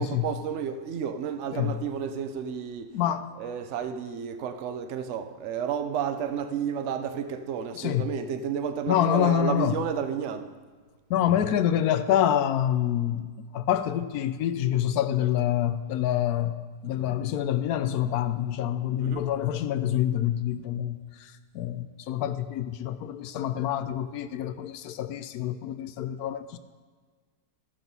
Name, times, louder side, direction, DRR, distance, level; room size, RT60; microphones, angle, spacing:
voice 1, 0.0-2.9 3.3-10.5 19.0-19.3, right 8 dB, 60° right, 0.9 m, -31 dB
voice 2, 2.9-3.3 7.8-8.1 8.9-9.8 11.1-16.5 16.8-26.6, left 11 dB, 75° left, 1.1 m, -27 dB
14.5 x 6.0 x 5.4 m
omnidirectional pair, 1.7 m